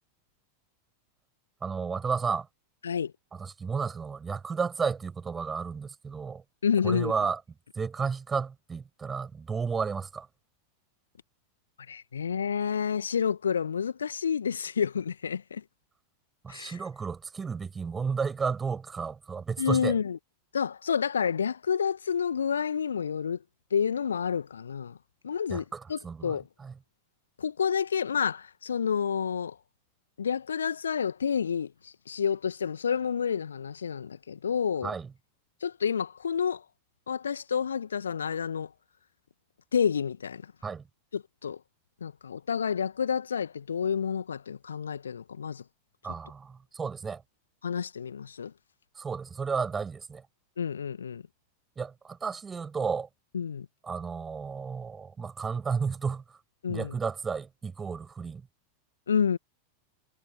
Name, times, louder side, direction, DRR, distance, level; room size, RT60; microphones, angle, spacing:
voice 1, 1.6-2.5 3.3-6.4 6.8-7.4 7.8-10.3 16.4-20.0 25.5-26.7 34.8-35.1 40.6-40.8 46.0-47.2 49.0-50.2 51.8-53.1 53.8-56.2 56.7-58.4, right 5 dB, 15° right, 7.5 m, -32 dB
voice 2, 6.6-7.1 11.9-15.6 16.5-16.8 19.6-20.2 20.5-23.4 23.7-25.0 25.2-26.5 27.4-29.6 30.2-34.9 35.6-36.6 37.1-38.7 39.7-40.4 41.1-41.6 42.0-45.6 47.6-48.5 50.6-51.2 53.3-53.7 56.6-56.9 59.1-59.4, left 7 dB, 70° left, 1.9 m, -29 dB
figure-of-eight pair, 90°, 0 cm